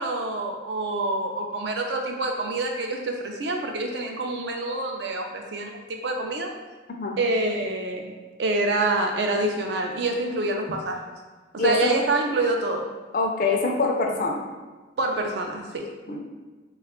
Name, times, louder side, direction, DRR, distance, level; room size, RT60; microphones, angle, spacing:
voice 1, 0.0-6.5 7.2-8.1 8.4-11.1 11.5-12.9 15.0-15.9, right 2 dB, 65° right, 3 dB, 0.4 m, -26 dB
voice 2, 11.6-11.9 13.1-14.4 16.1-16.2, left 3 dB, 45° left, 1 dB, 0.4 m, -24 dB
3.1 x 2.3 x 3.6 m, 1.3 s
head